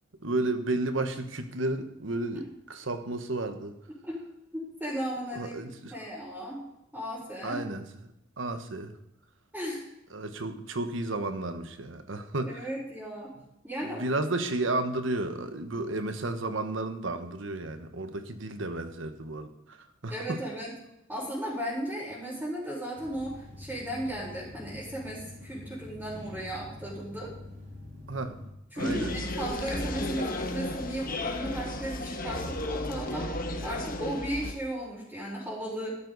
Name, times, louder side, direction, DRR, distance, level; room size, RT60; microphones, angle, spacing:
voice 1, 0.2-3.8 5.3-5.9 7.4-7.9 8.4-8.9 10.1-12.7 13.8-19.8 20.0-20.4 28.1-28.4 28.8-29.2, right 2 dB, 80° right, 8 dB, 1.2 m, -32 dB
voice 2, 4.5-6.6 6.9-7.6 9.5-9.8 12.4-13.3 13.6-14.1 20.1-20.7 21.1-27.3 28.7-33.3 33.6-36.0, right 1 dB, 5° right, -10 dB, 4.5 m, -35 dB
sound 1, 22.9-28.5, left 1 dB, 60° right, 3.4 m, -45 dB
sound 2, 28.8-34.5, left 1 dB, 45° left, 1.4 m, -33 dB
14.0 x 12.5 x 4.1 m, 0.83 s
head